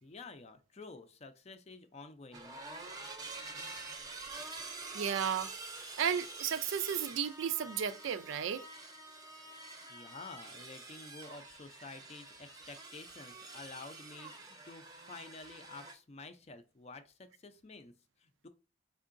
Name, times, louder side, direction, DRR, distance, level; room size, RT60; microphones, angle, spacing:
voice 1, 0.0-2.6 9.9-18.5, left 3 dB, 30° left, 0.4 m, -50 dB
sound 1, 2.3-15.9, right 3 dB, 20° right, 0.6 m, -47 dB
voice 2, 4.5-5.5 6.0-8.7, right 8 dB, 70° right, 0.4 m, -34 dB
4.5 x 3.7 x 2.5 m
head